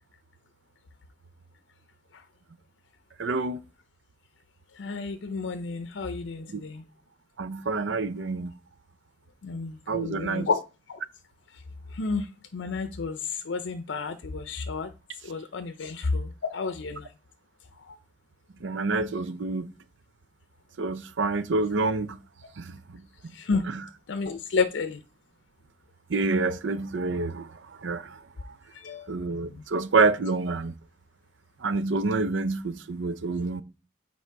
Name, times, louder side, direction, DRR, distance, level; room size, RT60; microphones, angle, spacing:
voice 1, 3.2-3.6 6.5-6.6 7.4-8.5 9.9-10.5 18.6-19.7 20.8-22.2 22.6-22.7 26.1-27.5 27.8-28.1 29.1-30.7 31.6-33.6, right 3 dB, 85° right, 0.6 m, -27 dB
voice 2, 4.8-6.8 9.4-10.6 10.9-11.0 11.9-12.3 12.5-14.9 15.2-17.1 17.9-18.0 23.3-23.6 24.1-25.0 28.7-29.1 29.5-29.6, left 4 dB, 85° left, 0.5 m, -31 dB
8.4 x 4.3 x 4.5 m
head